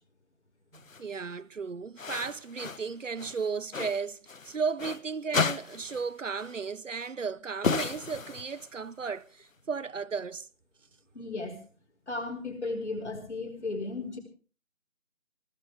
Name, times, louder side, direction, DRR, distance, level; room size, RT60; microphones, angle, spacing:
sound 1, 0.7-1.0 2.0-2.9 3.2-5.0 5.3-6.1 6.4-6.5 7.6-8.8, left 5 dB, 75° left, 1.1 m, -33 dB
voice 1, 0.7-10.5, right 5 dB, 65° right, 1.0 m, -35 dB
voice 2, 11.1-11.6 12.1-14.2, left 3 dB, 55° left, 5.2 m, -35 dB
20.5 x 19.0 x 3.5 m
figure-of-eight pair, 175°, 40 cm